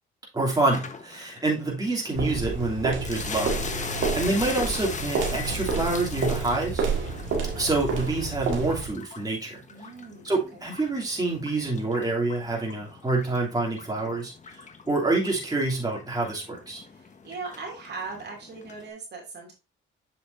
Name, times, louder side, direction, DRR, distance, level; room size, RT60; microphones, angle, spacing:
voice 1, 0.3-3.5 4.2-6.8 7.5-9.6 10.2-14.6 14.9-16.8, right 2 dB, 20° right, -3 dB, 2.9 m, -27 dB
sound 1, 0.7-18.9, left 5 dB, 40° left, 1.2 m, -41 dB
sound 2, 2.1-9.0, right 4 dB, 80° right, 1.9 m, -29 dB
voice 2, 9.7-10.6 16.9-19.5, right 4 dB, 60° right, -1 dB, 2.7 m, -39 dB
7.7 x 5.8 x 2.7 m, 0.28 s
cardioid pair, 90°, 20 cm